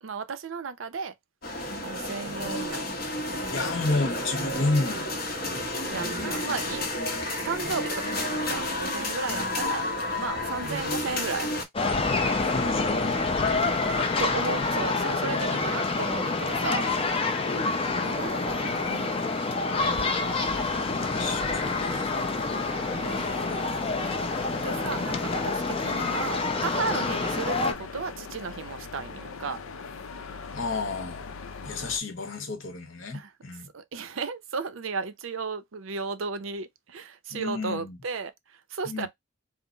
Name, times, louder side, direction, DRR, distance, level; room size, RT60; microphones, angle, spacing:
voice 1, 0.0-1.1 1.8-2.8 5.9-6.8 7.4-9.9 10.2-11.5 14.2-16.9 18.0-19.6 23.0-23.7 24.6-29.6 33.1-33.3 33.7-39.1, right 4 dB, 75° right, 0.6 m, -34 dB
sound 1, 1.4-11.6, left 1 dB, 50° left, 1.1 m, -31 dB
voice 2, 3.5-5.1 6.0-6.4 9.3-9.5 10.6-10.7 12.3-13.9 17.5-17.8 20.9-22.1 23.0-23.6 30.5-31.2 31.6-33.7 37.3-38.0 38.8-39.1, left 3 dB, 70° left, 1.0 m, -32 dB
sound 2, 11.7-27.7, left 3 dB, 25° left, 0.5 m, -27 dB
sound 3, 19.8-32.0, left 5 dB, 85° left, 0.5 m, -41 dB
3.7 x 2.0 x 3.8 m
head